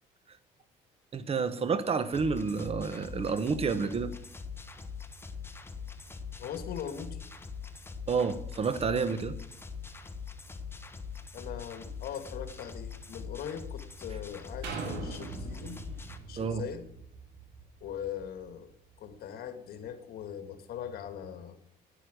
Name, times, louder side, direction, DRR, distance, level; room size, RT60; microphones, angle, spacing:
voice 1, 1.1-4.1 8.1-9.4 16.4-16.6, right 5 dB, 35° right, 1.0 m, -29 dB
sound 1, 2.1-16.2, left 5 dB, 15° left, 1.2 m, -43 dB
voice 2, 6.4-7.2 11.3-15.8 16.3-16.8 17.8-18.7 19.0-21.6, left 8 dB, 65° left, 1.9 m, -40 dB
sound 2, 14.6-18.4 18.9-19.0, right 4 dB, 80° right, 3.2 m, -42 dB
10.0 x 9.9 x 7.8 m
cardioid pair, 110°, 17 cm